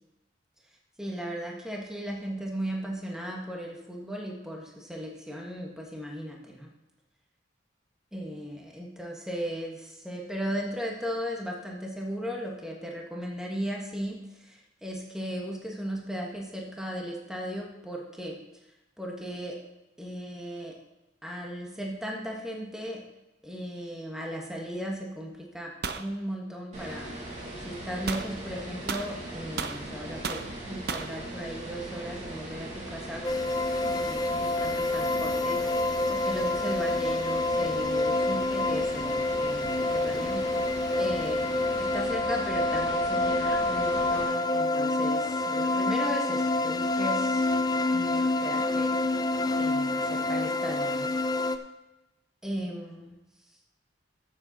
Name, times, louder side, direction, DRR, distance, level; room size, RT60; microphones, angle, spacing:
voice 1, 1.0-6.7 8.1-18.4 19.0-19.6 20.0-20.8 21.2-23.0 23.4-33.3 33.9-41.4 41.8-47.4 47.9-48.9 49.5-51.1 52.4-53.2, equal, 5° right, -1 dB, 1.4 m, -36 dB
sound 1, 25.8-26.1 28.1-28.3 28.9-29.8 30.2-30.5 30.9-31.1, right 5 dB, 55° right, 0.7 m, -33 dB
sound 2, 26.7-44.2, right 1 dB, 40° right, 3.3 m, -40 dB
sound 3, 33.2-51.6, left 2 dB, 20° left, 0.5 m, -27 dB
13.5 x 7.6 x 4.1 m, 0.94 s
head